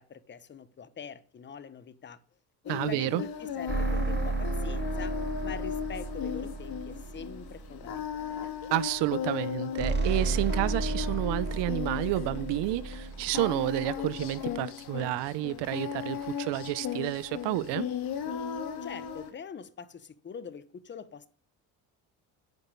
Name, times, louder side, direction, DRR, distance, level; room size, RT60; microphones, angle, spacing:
voice 1, 0.0-2.2 2.6-8.5 18.8-21.3, left 6 dB, 25° left, 1.1 m, -44 dB
Singing, 2.7-19.3, left 9 dB, 60° left, 2.3 m, -36 dB
voice 2, 2.7-3.2 8.7-17.9, right 16 dB, 80° right, 1.0 m, -30 dB
sound 1, 3.7-8.2 9.8-14.5, right 4 dB, 25° right, 1.6 m, -33 dB
10.5 x 8.8 x 9.7 m
cardioid pair, 155°, 41 cm